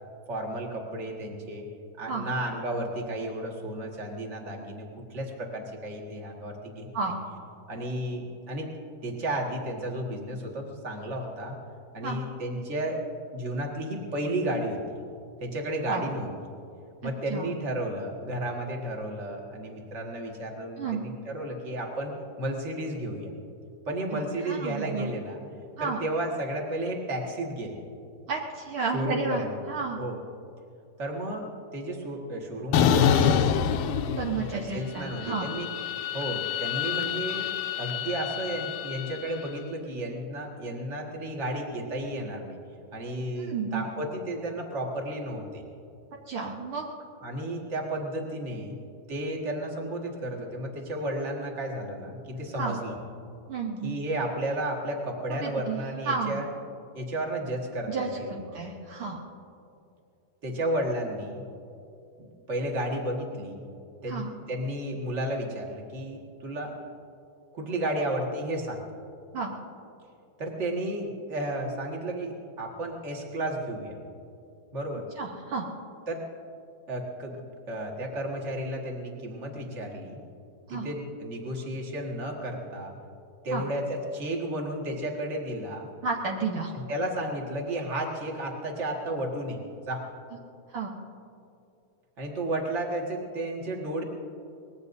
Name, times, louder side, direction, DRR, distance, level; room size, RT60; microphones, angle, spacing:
voice 1, 0.3-1.7 2.0-7.1 7.7-8.7 9.0-11.6 11.9-13.0 13.3-14.8 15.4-16.3 17.0-22.1 22.4-23.3 23.9-25.4 25.8-27.8 28.9-30.2 31.0-33.5 34.4-35.7 36.1-37.5 37.8-42.6 42.9-45.6 47.2-48.7 49.1-53.0 53.8-56.5 56.9-58.6 60.4-61.4 62.2-63.6 64.0-66.7 67.5-68.8 70.4-74.0 74.7-75.0 76.1-76.2 76.9-77.4 77.7-80.2 80.7-82.9 83.4-85.9 86.9-89.6 89.9-90.0 92.2-94.0, right 1 dB, 30° right, 0 dB, 1.3 m, -33 dB
voice 2, 24.1-25.1 25.8-26.0 28.3-30.0 34.2-35.5 43.4-43.9 46.3-46.9 52.6-52.8 53.5-54.0 55.3-55.8 56.0-56.4 57.9-59.2 64.1-64.3 69.3-69.5 75.2-75.6 80.7-80.9 83.5-83.7 86.0-86.7 90.7-90.9, right 4 dB, 90° right, -1 dB, 1.1 m, -32 dB
sound 1, 32.7-34.7 35.0-39.3, left 8 dB, 80° left, 2.3 m, -26 dB
24.5 x 20.0 x 2.7 m, 2.6 s
omnidirectional pair, 4.1 m